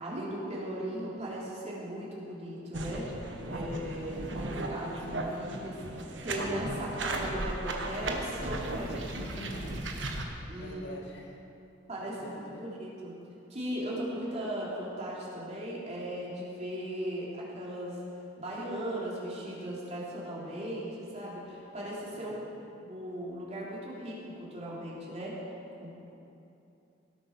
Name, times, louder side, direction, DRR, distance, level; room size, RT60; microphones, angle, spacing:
voice 1, 0.0-3.1 3.4-9.4 10.5-10.8 11.9-13.2 13.5-18.0 18.4-22.3 22.8-25.4 25.8-25.9, right 1 dB, 35° right, -6 dB, 3.3 m, -38 dB
sound 1, 2.7-10.2, right 1 dB, 75° right, 1.4 m, -36 dB
voice 2, 9.3-9.9 10.5-11.5 12.0-12.7 22.1-22.6, equal, 65° left, 0 dB, 2.0 m, -47 dB
18.5 x 8.3 x 6.1 m, 2.8 s
head